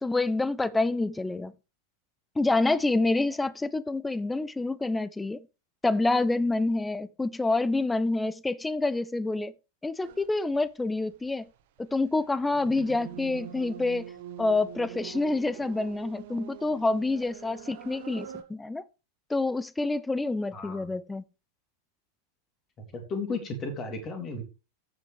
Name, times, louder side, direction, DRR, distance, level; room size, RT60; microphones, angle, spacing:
voice 1, 0.0-1.5 2.4-5.4 5.8-9.5 9.8-11.5 11.8-14.1 14.4-18.8 19.3-21.2, left 2 dB, 10° left, 0.5 m, -27 dB
sound 1, 10.0-10.3 10.5-18.4, right 10 dB, 50° right, 1.5 m, -44 dB
voice 2, 20.5-20.9 22.9-24.4, left 3 dB, 30° left, 3.0 m, -34 dB
14.0 x 7.4 x 3.3 m
figure-of-eight pair, 90°, 0 cm